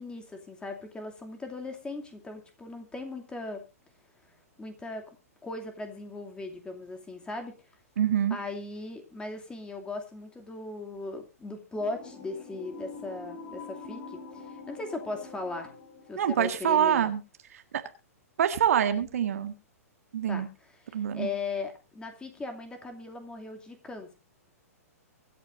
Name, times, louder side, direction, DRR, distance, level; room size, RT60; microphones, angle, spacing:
voice 1, 0.0-3.6 4.6-5.2 5.4-7.5 8.3-15.7 16.1-17.1 20.3-20.5 20.9-24.1, left 3 dB, 10° left, 5 dB, 2.6 m, -38 dB
voice 2, 8.0-8.4 16.1-17.2 17.5-17.8 18.4-19.5 20.1-20.5 20.9-21.3, right 9 dB, 65° right, 8 dB, 1.7 m, -25 dB
sound 1, 11.8-17.1, left 4 dB, 35° left, 5.6 m, -45 dB
23.5 x 8.6 x 2.6 m, 0.30 s
hypercardioid pair, 115°, 8 cm